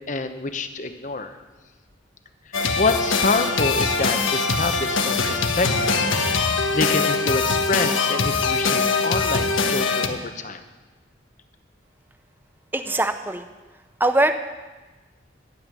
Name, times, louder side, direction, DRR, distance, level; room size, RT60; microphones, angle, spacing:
voice 1, 0.1-1.3 2.7-6.1 6.7-10.6, left 3 dB, 40° left, 9 dB, 0.9 m, -27 dB
sound 1, 2.5-10.1, left 4 dB, 85° left, 1.3 m, -22 dB
voice 2, 12.7-13.4 14.0-14.3, right 2 dB, 10° right, 8 dB, 0.6 m, -21 dB
12.5 x 7.8 x 9.1 m, 1.2 s
head